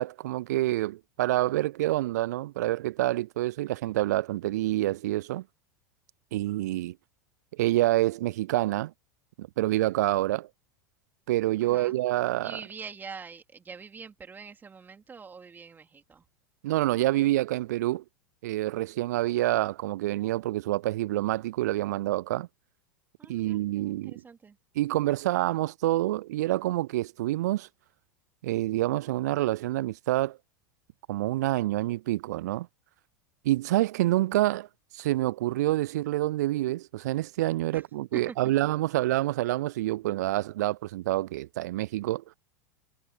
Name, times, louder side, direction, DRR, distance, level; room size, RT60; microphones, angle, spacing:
voice 1, 0.0-5.4 6.3-7.0 7.6-8.9 9.4-10.5 11.3-12.6 16.6-18.0 18.4-22.5 23.3-24.2 24.8-27.7 28.4-30.4 31.1-32.7 33.4-34.7 34.9-42.2, right 16 dB, 60° right, 0.4 m, -27 dB
voice 2, 11.6-12.0 12.4-16.2 23.2-24.6 37.7-37.8 38.1-38.4, right 5 dB, 20° right, 3.7 m, -44 dB
figure-of-eight pair, 85°, 10 cm